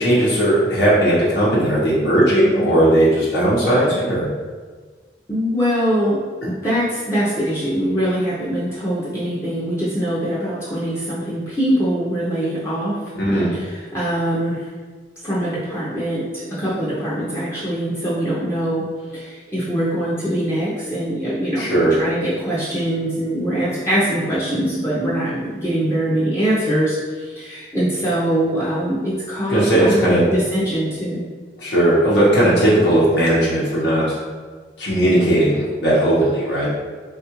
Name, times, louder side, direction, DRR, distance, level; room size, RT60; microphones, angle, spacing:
voice 1, 0.0-4.3 13.1-13.5 21.6-21.9 29.5-30.2 31.6-34.0 34.8-36.7, right 1 dB, 90° left, -8 dB, 0.8 m, -17 dB
voice 2, 5.3-13.0 13.5-14.7 15.2-18.9 19.1-31.2, equal, 15° left, -9 dB, 0.5 m, -23 dB
3.5 x 2.4 x 2.9 m, 1.5 s
head